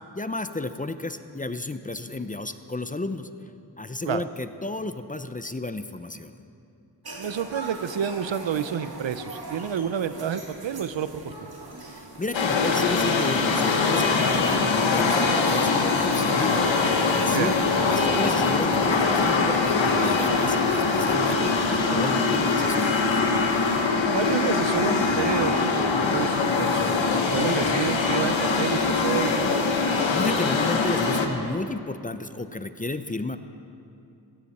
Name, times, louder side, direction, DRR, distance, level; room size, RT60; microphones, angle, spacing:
voice 1, 0.1-3.3 3.8-6.4 11.9-16.6 17.1-17.6 17.9-23.3 30.1-33.4, left 2 dB, 20° left, 10 dB, 0.6 m, -32 dB
sound 1, 7.0-21.7, right 2 dB, 55° right, 2.2 m, -41 dB
voice 2, 7.2-11.5 17.3-17.5 24.1-29.6, right 8 dB, 75° right, 13 dB, 0.7 m, -29 dB
sound 2, 12.3-31.3, left 4 dB, 90° left, 1.3 m, -23 dB
17.0 x 16.0 x 4.3 m, 2.6 s
wide cardioid pair, 75°, 45 cm